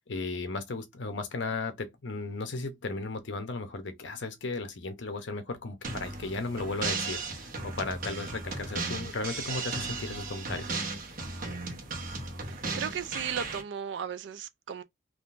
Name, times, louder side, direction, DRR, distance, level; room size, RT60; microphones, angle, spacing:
voice 1, 0.1-10.7, left 3 dB, 65° left, 0.7 m, -35 dB
sound 1, 5.8-13.6, right 3 dB, 45° right, 0.9 m, -36 dB
voice 2, 12.5-14.8, right 8 dB, 65° right, 0.3 m, -36 dB
3.6 x 2.5 x 2.5 m
head